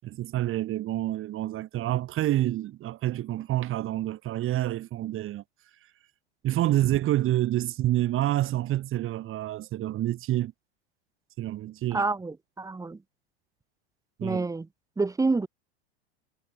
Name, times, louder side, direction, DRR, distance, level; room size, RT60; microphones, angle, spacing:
voice 1, 0.0-5.4 6.4-10.5 11.4-12.1 14.2-14.5, right 14 dB, 40° right, 7.3 m, -28 dB
voice 2, 11.9-13.0 14.2-14.7 15.0-15.5, right 3 dB, 10° right, 1.6 m, -28 dB
hypercardioid pair, 90°, 32 cm